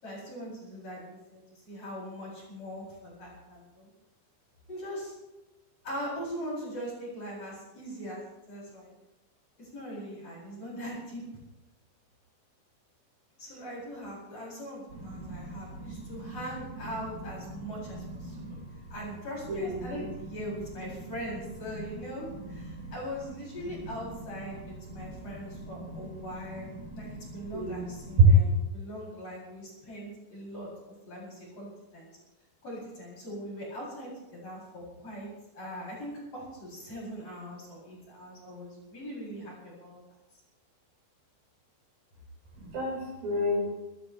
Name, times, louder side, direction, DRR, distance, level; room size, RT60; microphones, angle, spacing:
voice 1, 0.0-3.9 4.7-5.1 5.8-8.9 9.6-11.2 13.4-18.6 18.9-26.7 26.9-30.7 31.1-32.1 32.6-35.3 35.5-40.0, equal, 35° left, -5 dB, 9.0 m, -41 dB
voice 2, 14.9-16.4 16.7-16.9 17.4-19.0 19.5-20.1 21.0-21.1 21.7-22.9 23.6-24.0 24.3-24.6 24.9-26.1 26.5-28.3 42.6-43.6, right 3 dB, 65° right, 0 dB, 7.4 m, -31 dB
28.0 x 14.5 x 3.5 m, 1.0 s
omnidirectional pair, 5.2 m